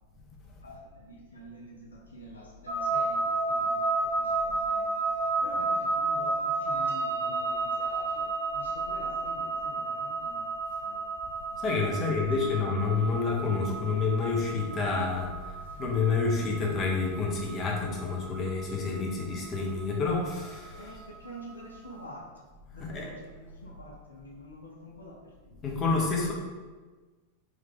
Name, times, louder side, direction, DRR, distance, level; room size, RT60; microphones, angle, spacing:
voice 1, 0.6-4.9 5.4-10.5 10.8-11.1 11.9-12.1 12.4-12.5 20.8-22.3 22.7-25.2 25.5-25.6, left 1 dB, 75° left, -1 dB, 0.5 m, -47 dB
sound 1, 2.7-21.7, right 3 dB, 75° right, 0.5 m, -32 dB
voice 2, 11.6-21.0 22.7-23.1 25.6-26.3, left 4 dB, 30° left, -1 dB, 0.7 m, -29 dB
3.1 x 2.4 x 3.6 m, 1.3 s
figure-of-eight pair, 90°, 0 cm